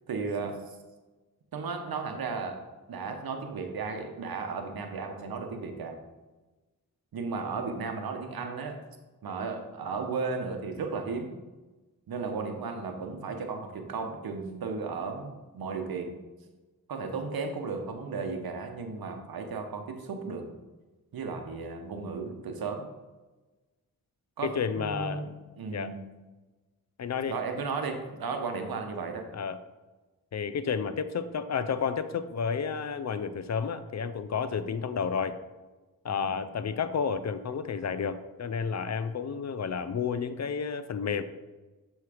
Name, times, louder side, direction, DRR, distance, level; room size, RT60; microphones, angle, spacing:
voice 1, 0.1-0.6 1.5-2.6 2.9-6.0 7.1-8.8 9.2-11.3 12.1-16.1 16.9-20.4 21.1-22.8 24.4-26.0 27.3-29.3 36.1-36.4, right 4 dB, 70° right, 5 dB, 0.9 m, -35 dB
voice 2, 24.4-25.3 25.7-25.9 27.0-27.3 29.3-29.6 30.3-35.4 36.0-41.2, left 6 dB, 45° left, 12 dB, 0.5 m, -31 dB
6.7 x 3.2 x 4.8 m, 1.2 s
cardioid pair, 45°, 37 cm